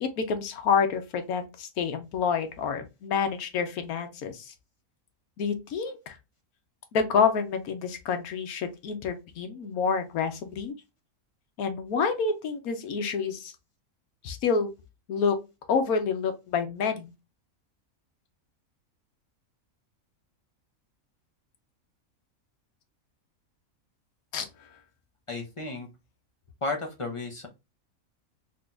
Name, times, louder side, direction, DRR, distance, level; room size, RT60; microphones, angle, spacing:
voice 1, 0.0-4.5 5.4-6.2 6.9-10.7 11.6-13.5 14.2-14.7 15.1-15.4 15.7-17.1 24.3-24.5, left 6 dB, 80° left, 1.3 m, -28 dB
voice 2, 25.3-25.9 26.6-27.5, left 3 dB, 30° left, 0.7 m, -33 dB
3.9 x 2.8 x 2.4 m
omnidirectional pair, 1.5 m